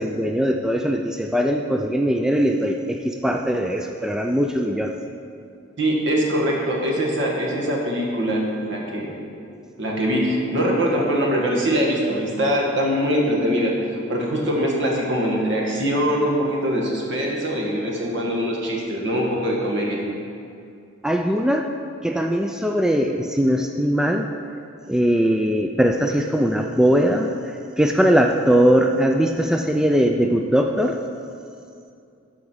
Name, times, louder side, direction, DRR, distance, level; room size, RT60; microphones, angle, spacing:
voice 1, 0.0-4.9 21.0-21.7 22.0-24.3 24.9-31.0, equal, 5° right, 3 dB, 0.3 m, -20 dB
voice 2, 5.8-9.1 9.8-20.0, equal, 65° right, -2 dB, 1.8 m, -22 dB
12.5 x 4.9 x 6.2 m, 2.5 s
head